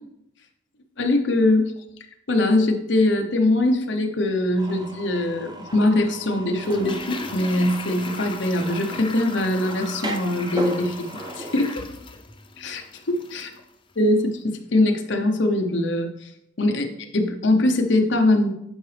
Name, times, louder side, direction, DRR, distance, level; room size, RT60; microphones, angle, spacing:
voice 1, 1.0-1.7 2.3-11.1 11.4-11.8 12.6-13.5 14.0-16.3 16.6-18.5, left 1 dB, 65° left, 5 dB, 0.9 m, -22 dB
sound 1, 4.6-11.7, right 1 dB, 20° right, 0.6 m, -37 dB
Toilet flush, 6.6-13.6 13.9-14.0, left 2 dB, 25° left, 0.5 m, -37 dB
9.9 x 4.8 x 3.4 m, 0.80 s
head